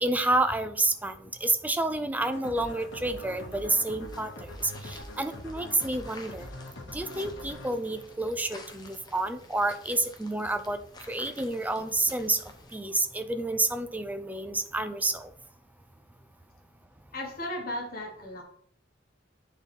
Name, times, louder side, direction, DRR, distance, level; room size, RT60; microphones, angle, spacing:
voice 1, 0.0-6.5 6.9-10.8 11.1-12.4 12.7-15.3, right 2 dB, 10° right, 9 dB, 0.5 m, -29 dB
sound 1, 2.2-9.0, left 1 dB, 65° left, 1.1 m, -43 dB
sound 2, 2.7-12.8, left 2 dB, 20° left, 0.9 m, -51 dB
voice 2, 17.1-18.4, left 1 dB, 50° left, 1 dB, 1.5 m, -35 dB
9.5 x 4.0 x 3.6 m, 0.63 s
head